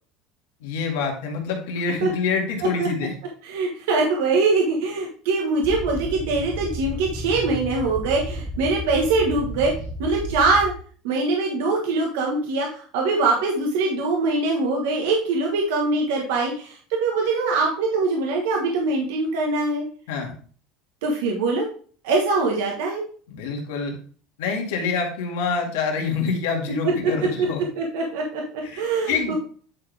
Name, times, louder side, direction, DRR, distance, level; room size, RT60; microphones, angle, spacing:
voice 1, 0.6-3.1 20.1-20.4 23.3-23.9 24.4-27.6 28.6-29.3, left 5 dB, 85° left, 2 dB, 1.9 m, -26 dB
voice 2, 3.4-9.7 10.0-10.7 11.0-19.8 21.0-21.7 22.0-23.0 26.8-27.5 27.8-29.3, right 3 dB, 85° right, 0 dB, 1.4 m, -23 dB
sound 1, 5.6-10.7, equal, 5° right, 1.4 m, -32 dB
9.7 x 4.2 x 3.4 m, 0.44 s
supercardioid pair, 120°, 0 cm